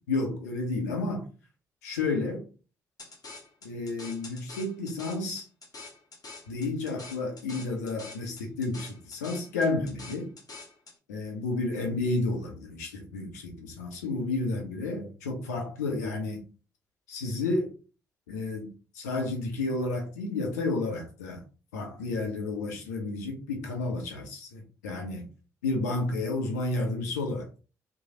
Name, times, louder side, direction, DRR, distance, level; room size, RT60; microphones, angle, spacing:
voice 1, 0.1-1.3 1.8-2.5 3.6-5.5 6.5-10.3 11.1-16.4 17.1-17.7 18.3-21.4 21.7-25.3 25.6-27.5, left 2 dB, 85° left, 2 dB, 0.7 m, -31 dB
sound 1, 3.0-11.0, left 3 dB, 45° left, 1.0 m, -46 dB
3.1 x 2.2 x 2.8 m, 0.35 s
hypercardioid pair, 45°, 9 cm